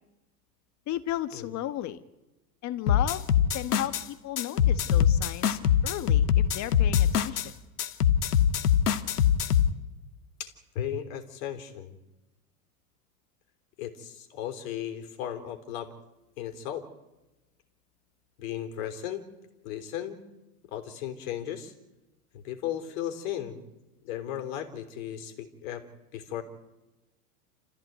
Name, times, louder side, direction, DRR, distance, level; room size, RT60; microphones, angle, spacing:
voice 1, 0.9-2.0 2.6-3.2 3.5-7.4, left 13 dB, 40° left, 13 dB, 1.7 m, -34 dB
sound 1, 2.9-4.0 4.4-7.5 7.8-9.7, left 9 dB, 85° left, 1.8 m, -23 dB
voice 2, 10.4-12.0 13.8-15.9 16.4-16.8 18.4-19.2 19.6-20.2 20.7-21.7 22.4-23.6 24.0-25.8 26.1-26.4, left 10 dB, 60° left, 6 dB, 3.8 m, -35 dB
29.0 x 15.0 x 9.4 m, 1.0 s
hypercardioid pair, 105°, 45 cm